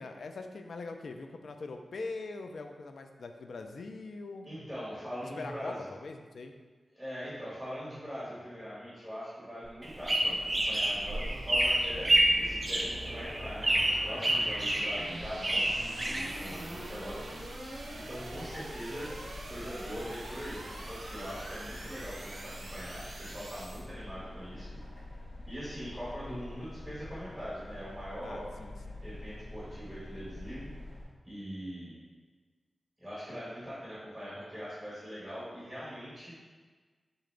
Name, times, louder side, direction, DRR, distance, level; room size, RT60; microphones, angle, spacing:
voice 1, 0.0-4.5 5.4-6.5 10.2-10.4 14.2-14.5 28.2-29.0, left 3 dB, 70° left, 5 dB, 0.3 m, -42 dB
voice 2, 4.4-5.8 6.9-19.1 19.5-24.8 25.5-28.5 29.0-30.7 31.2-32.0 33.0-36.3, equal, 5° left, -11 dB, 1.4 m, -42 dB
sound 1, 9.6-23.8, right 1 dB, 80° right, 0.8 m, -45 dB
sound 2, 9.8-16.9, right 1 dB, 20° right, 0.4 m, -29 dB
sound 3, 15.2-31.0, left 1 dB, 50° left, 1.1 m, -46 dB
3.9 x 3.7 x 3.3 m, 1.4 s
wide cardioid pair, 135°, 0 cm